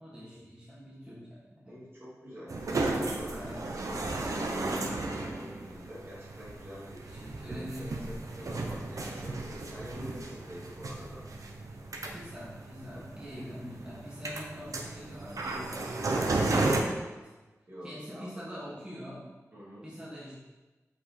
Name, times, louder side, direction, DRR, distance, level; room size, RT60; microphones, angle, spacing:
voice 1, 0.0-1.8 3.3-3.7 7.1-8.2 12.1-17.3 17.8-19.3 19.8-20.3, equal, 15° right, -8 dB, 2.4 m, -44 dB
voice 2, 1.7-7.0 7.5-11.3 17.7-18.6 19.5-19.9, equal, 45° right, -8 dB, 2.6 m, -46 dB
sound 1, 2.5-16.8, right 2 dB, 85° right, 0.8 m, -34 dB
7.6 x 5.0 x 4.4 m, 1.2 s
wide cardioid pair, 85°, 6 cm